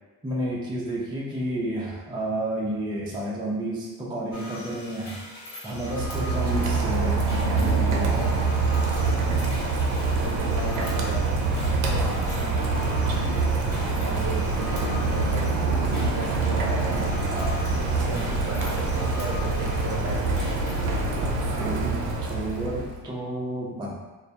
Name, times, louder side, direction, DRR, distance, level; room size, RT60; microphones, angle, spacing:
voice 1, 0.2-5.2 5.6-8.4 17.3-17.6 21.2-23.9, right 1 dB, 10° right, -5 dB, 0.4 m, -31 dB
sound 1, 4.3-21.0, left 1 dB, 75° left, 0.9 m, -42 dB
Rain, 5.7-23.0, right 3 dB, 70° right, 0.6 m, -25 dB
voice 2, 6.3-6.8 10.1-13.2 13.6-17.1 17.7-20.4, right 2 dB, 30° right, -2 dB, 0.7 m, -36 dB
2.2 x 2.1 x 2.7 m, 1.2 s
supercardioid pair, 55°, 48 cm